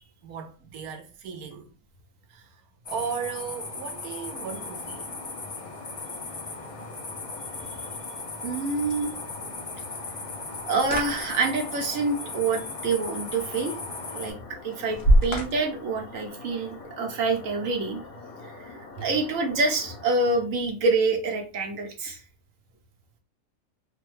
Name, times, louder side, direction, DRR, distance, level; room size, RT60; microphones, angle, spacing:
voice 1, 0.2-1.7 2.3-2.5 2.9-5.1 5.6-5.7 8.4-8.5, right 7 dB, 90° right, 1.2 m, -36 dB
sound 1, 2.8-14.3, left 3 dB, 45° left, 0.4 m, -37 dB
sound 2, 4.3-20.4, left 3 dB, 85° left, 1.5 m, -45 dB
sound 3, 6.3-16.9, right 1 dB, 65° left, 1.1 m, -31 dB
voice 2, 8.4-9.1 10.7-13.8 14.1-14.3 14.6-18.0 18.7-22.2, right 3 dB, 65° right, 1.2 m, -26 dB
3.4 x 2.2 x 3.1 m
omnidirectional pair, 1.5 m